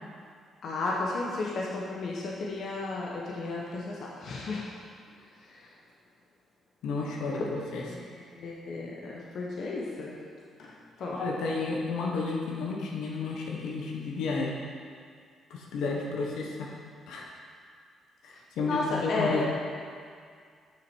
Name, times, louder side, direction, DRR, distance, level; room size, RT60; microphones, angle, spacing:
voice 1, 0.6-4.6 5.5-5.6 7.3-7.4 8.3-10.2 10.6-10.7 11.0-11.1 18.7-19.5, left 3 dB, 65° left, -3 dB, 1.1 m, -33 dB
voice 2, 6.8-7.8 11.1-14.5 15.5-16.7 17.1-17.3 18.2-19.5, left 3 dB, 80° left, -2 dB, 1.2 m, -32 dB
7.4 x 6.2 x 4.6 m, 2.1 s
cardioid pair, 90°, 0 cm